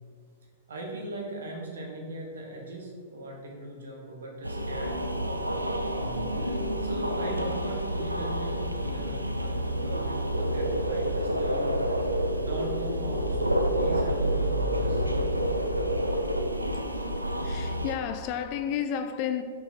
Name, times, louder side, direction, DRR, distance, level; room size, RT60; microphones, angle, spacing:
voice 1, 0.7-5.6 5.9-15.0, right 1 dB, 65° right, 1.3 m, -39 dB
sound 1, 4.4-18.0, equal, 85° right, 0.4 m, -28 dB
voice 2, 17.4-19.4, left 9 dB, 40° left, 0.4 m, -31 dB
5.4 x 4.5 x 4.4 m
figure-of-eight pair, 100°, 0 cm